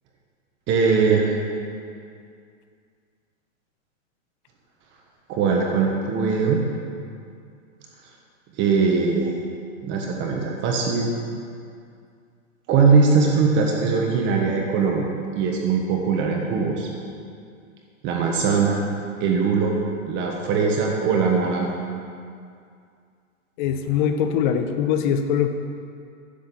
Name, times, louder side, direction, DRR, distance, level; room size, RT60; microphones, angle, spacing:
voice 1, 0.7-1.3 5.3-6.6 8.6-9.3 9.8-11.1 12.7-16.9 18.0-18.8 19.2-19.8 20.1-21.7, right 5 dB, 30° right, 0 dB, 1.3 m, -21 dB
voice 2, 23.6-25.5, left 8 dB, 35° left, 7 dB, 0.8 m, -22 dB
10.5 x 8.0 x 7.0 m, 2.3 s
hypercardioid pair, 145°, 41 cm